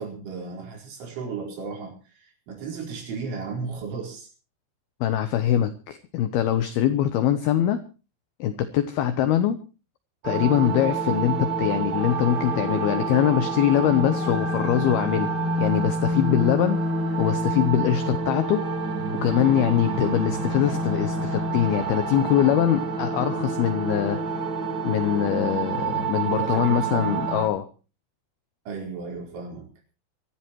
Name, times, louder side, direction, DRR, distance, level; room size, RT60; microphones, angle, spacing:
voice 1, 0.0-4.3 26.3-27.2 28.7-29.7, right 5 dB, 70° right, 0 dB, 7.0 m, -34 dB
voice 2, 5.0-7.8 8.4-9.6 10.2-15.3 15.6-16.8 17.2-18.6 19.2-24.2 24.8-27.7, left 11 dB, 90° left, 11 dB, 2.2 m, -23 dB
sound 1, 10.2-27.5, right 3 dB, 30° right, 4.9 m, -27 dB
24.0 x 14.5 x 3.0 m, 0.34 s
omnidirectional pair, 5.7 m